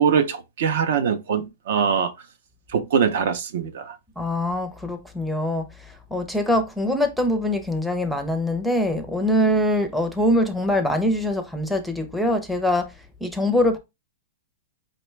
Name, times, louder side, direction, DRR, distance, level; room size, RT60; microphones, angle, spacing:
voice 1, 0.0-2.1 2.7-4.0, right 7 dB, 65° right, 0.5 m, -22 dB
voice 2, 4.2-12.9 13.2-13.8, left 1 dB, ahead, 0.5 m, -23 dB
5.0 x 2.2 x 3.1 m
hypercardioid pair, 155°, 0 cm